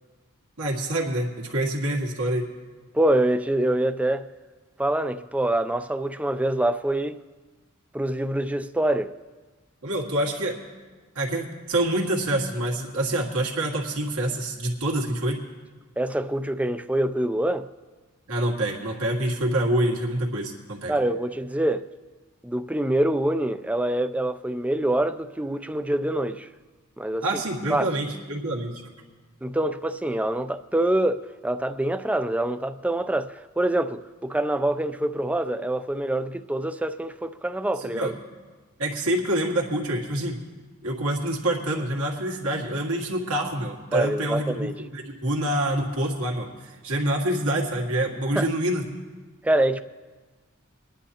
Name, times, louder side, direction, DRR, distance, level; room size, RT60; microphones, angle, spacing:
voice 1, 0.6-2.4 9.8-10.6 11.2-15.4 18.3-20.9 27.2-28.9 37.8-38.1 38.8-40.4 40.8-49.0, right 1 dB, 75° right, 1.9 m, -26 dB
voice 2, 2.9-4.3 4.8-7.2 7.9-9.2 16.0-17.7 20.9-21.9 22.4-26.5 27.0-27.3 27.7-27.9 29.4-38.1 43.9-44.8 48.3-48.5 49.4-49.8, right 1 dB, 5° right, 0.3 m, -25 dB
26.0 x 10.5 x 2.9 m
head